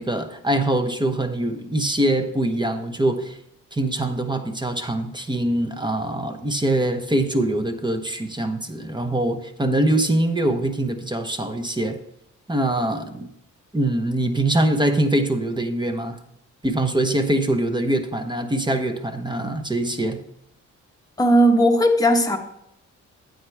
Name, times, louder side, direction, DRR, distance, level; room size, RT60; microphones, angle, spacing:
voice 1, 0.0-3.4 3.7-12.0 12.5-13.3 13.7-16.2 16.6-20.2, right 1 dB, 15° right, 8 dB, 0.9 m, -23 dB
voice 2, 21.2-22.4, equal, 10° left, 2 dB, 1.2 m, -16 dB
9.4 x 8.0 x 3.4 m, 0.79 s
cardioid pair, 80°, 32 cm